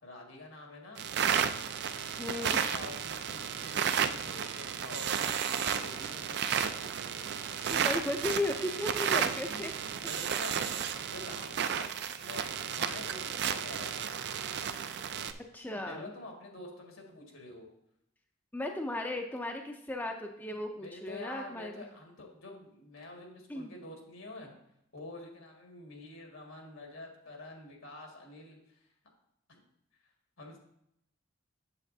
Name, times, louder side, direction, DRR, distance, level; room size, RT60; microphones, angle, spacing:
voice 1, 0.0-1.1 2.4-7.3 9.1-14.2 15.8-17.7 20.8-24.5 24.9-28.8 30.4-30.6, left 2 dB, 75° left, 0 dB, 1.8 m, -47 dB
sound 1, 1.0-15.3, right 8 dB, 55° right, 0.4 m, -33 dB
voice 2, 2.2-2.6 7.7-9.7 15.5-16.1 18.5-21.7 23.5-23.7, left 2 dB, 10° left, 4 dB, 0.5 m, -35 dB
8.2 x 7.3 x 2.7 m, 0.79 s
head